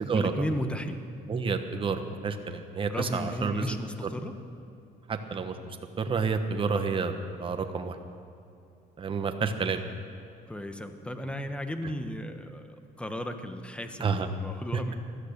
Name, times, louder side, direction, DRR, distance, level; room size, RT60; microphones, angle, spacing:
voice 1, 0.1-1.0 2.9-4.3 10.5-14.9, equal, 5° left, 7 dB, 1.2 m, -35 dB
voice 2, 1.3-3.7 5.1-5.6 6.0-7.1 7.4-8.0 9.0-9.8 14.0-14.3 14.7-14.8, right 5 dB, 30° right, 6 dB, 1.1 m, -29 dB
16.0 x 12.5 x 6.7 m, 2.6 s
cardioid pair, 110°, 17 cm